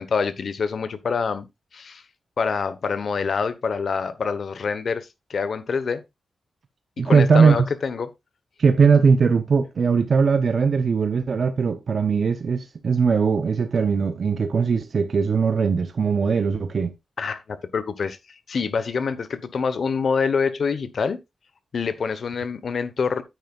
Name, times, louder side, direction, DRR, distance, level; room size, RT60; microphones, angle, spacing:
voice 1, 0.0-1.5 1.7-2.0 2.4-6.0 7.0-8.1 17.2-18.2 18.5-21.2 21.7-23.2, left 5 dB, 55° left, 1.1 m, -26 dB
voice 2, 7.0-7.7 8.6-16.9, right 5 dB, 50° right, 0.8 m, -20 dB
9.2 x 9.2 x 2.4 m
wide cardioid pair, 155°, 0 cm